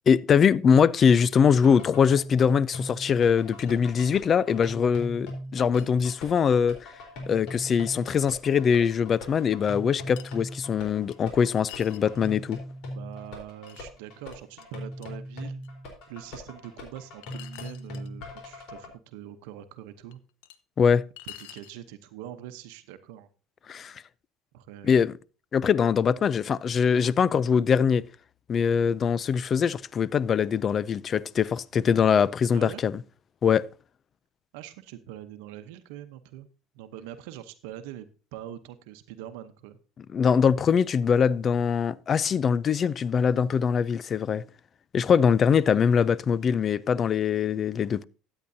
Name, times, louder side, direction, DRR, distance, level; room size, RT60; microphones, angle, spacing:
voice 1, 0.1-6.9 7.3-12.6 20.8-21.0 23.7-23.9 24.8-25.1 25.5-28.0 28.5-32.9 33.4-33.7 40.1-44.4 44.9-48.0, left 7 dB, 35° left, 0.4 m, -22 dB
sound 1, 1.3-18.9, left 1 dB, 70° left, 3.9 m, -40 dB
sound 2, 3.3-4.3 4.8-4.9 5.3-5.4 5.8-6.3 8.1-8.2 9.0-9.1 10.2-10.6 11.1-12.6 13.1-13.8 14.3-14.6 15.0-15.1 15.6-15.7 17.2-18.1 19.4-19.5 20.1-20.6 21.2-21.8, left 13 dB, 85° left, 0.7 m, -47 dB
voice 2, 12.9-15.6 16.1-20.2 21.4-23.3 24.5-25.2 32.5-32.8 34.5-36.5 36.7-39.8, right 11 dB, 85° right, 0.8 m, -43 dB
13.5 x 8.9 x 2.7 m
supercardioid pair, 110°, 0 cm